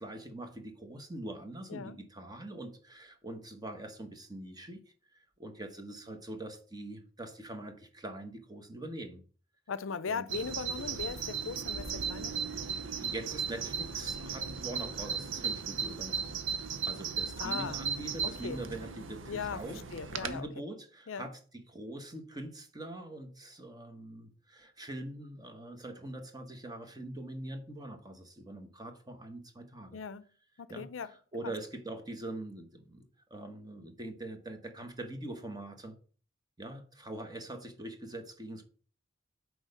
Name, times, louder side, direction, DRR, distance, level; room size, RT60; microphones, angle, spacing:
voice 1, 0.0-4.8 5.1-9.2 10.1-10.2 13.0-16.3 16.8-30.0 30.7-35.9 36.6-38.6, right 1 dB, 20° right, 1.2 m, -43 dB
voice 2, 9.7-12.4 17.4-17.8 18.4-18.6 19.3-19.6 19.9-20.5 21.1-21.3 29.9-30.3 30.6-31.1, left 6 dB, 80° left, 0.5 m, -38 dB
Bird vocalization bird call bird song, 10.3-20.4, right 6 dB, 70° right, 0.8 m, -36 dB
6.3 x 4.7 x 6.6 m
head